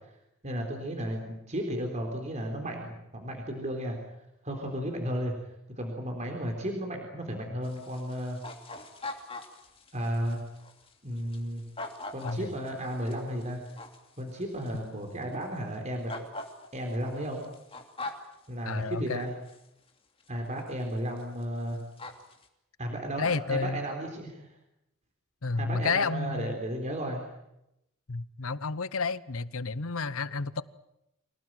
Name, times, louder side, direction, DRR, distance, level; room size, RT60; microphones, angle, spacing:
voice 1, 0.4-4.0 4.4-5.3 5.8-8.4 9.9-10.4 11.0-11.6 12.1-13.6 14.2-16.1 16.7-17.4 18.5-19.3 20.3-21.8 22.8-24.5 25.6-27.2, equal, 35° right, 3.9 m, -34 dB
sound 1, 7.6-14.8 15.2-15.3 16.1-18.3 19.5-19.6 20.2-20.3 20.7-20.9 21.2-21.4 21.7-22.4, left 2 dB, 25° left, 2.9 m, -42 dB
voice 2, 18.6-19.2 23.2-23.8 25.4-26.6 28.1-30.6, left 4 dB, 90° left, 0.9 m, -30 dB
26.0 x 18.5 x 9.2 m
head